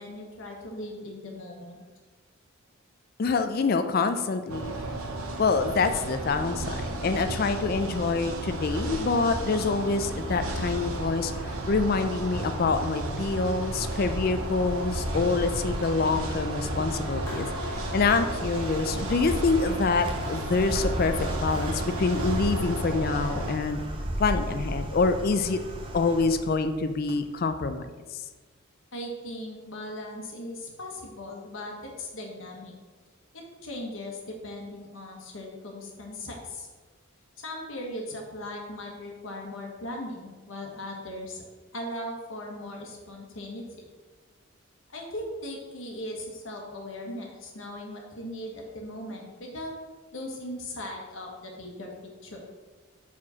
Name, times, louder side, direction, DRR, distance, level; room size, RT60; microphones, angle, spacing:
voice 1, 0.0-1.8 28.9-32.7 33.3-36.7 37.4-41.4 41.7-43.8 44.9-49.7 50.1-51.9 52.2-52.4, left 1 dB, 65° left, 0 dB, 1.3 m, -38 dB
voice 2, 3.2-4.7 5.4-17.5 17.9-21.1 21.4-23.8 24.2-25.6 25.9-27.9 28.1-28.2, left 4 dB, 45° left, 8 dB, 0.3 m, -26 dB
sound 1, 4.5-23.6, right 1 dB, 90° right, 0.9 m, -33 dB
sound 2, 9.3-27.4, right 1 dB, 25° right, 0.6 m, -36 dB
Clapping, 17.3-19.1, left 1 dB, 10° left, 1.0 m, -47 dB
4.8 x 4.3 x 5.6 m, 1.3 s
head